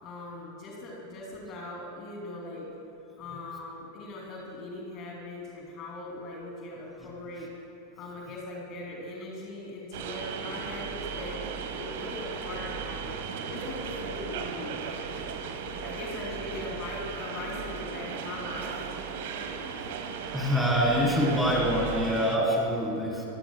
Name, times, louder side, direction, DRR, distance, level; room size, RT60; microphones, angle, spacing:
voice 1, 0.0-2.8 3.2-7.5 8.0-13.2 13.5-15.3 15.8-19.1 19.8-20.0, left 2 dB, 35° left, -2 dB, 2.9 m, -40 dB
sound 1, 9.9-22.4, right 6 dB, 55° right, 1.3 m, -36 dB
voice 2, 20.3-23.2, equal, ahead, -4 dB, 3.7 m, -25 dB
25.5 x 16.0 x 2.3 m, 2.8 s
figure-of-eight pair, 90°, 0 cm